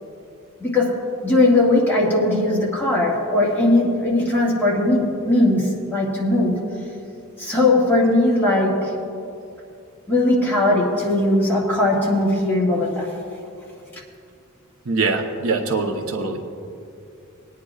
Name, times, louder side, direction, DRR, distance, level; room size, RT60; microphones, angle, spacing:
voice 1, 0.6-0.9 1.2-5.6 5.9-6.5 7.4-8.7 10.1-13.1, left 2 dB, 10° left, -6 dB, 1.9 m, -19 dB
voice 2, 14.9-16.4, right 3 dB, 70° right, 3 dB, 0.9 m, -23 dB
22.0 x 9.5 x 2.4 m, 2.6 s
head